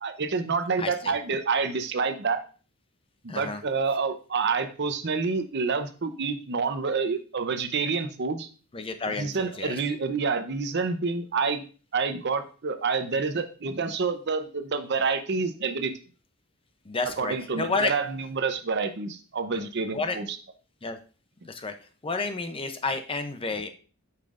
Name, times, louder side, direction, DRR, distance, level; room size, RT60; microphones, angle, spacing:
voice 1, 0.0-2.4 3.2-8.5 9.1-11.6 11.9-15.9 17.2-20.4, right 4 dB, 55° right, 9 dB, 0.7 m, -28 dB
voice 2, 0.8-1.1 3.3-3.6 8.7-9.7 16.9-17.9 19.5-19.6 19.9-20.2 20.8-21.0 21.5-21.7 22.0-23.7, left 3 dB, 25° left, 8 dB, 0.6 m, -30 dB
8.5 x 5.8 x 2.5 m, 0.37 s
head